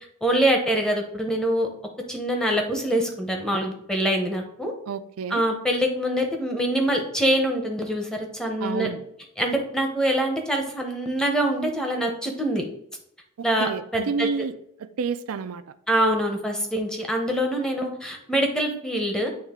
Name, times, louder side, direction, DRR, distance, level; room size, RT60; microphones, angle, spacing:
voice 1, 0.2-1.7 2.1-4.7 5.3-8.9 9.4-12.6 13.4-14.3 15.9-19.3, right 1 dB, 5° left, 2 dB, 0.8 m, -24 dB
voice 2, 4.9-5.4 8.6-9.0 13.4-14.5 14.8-15.6, right 5 dB, 85° right, 13 dB, 0.4 m, -29 dB
8.4 x 3.2 x 3.6 m, 0.75 s
head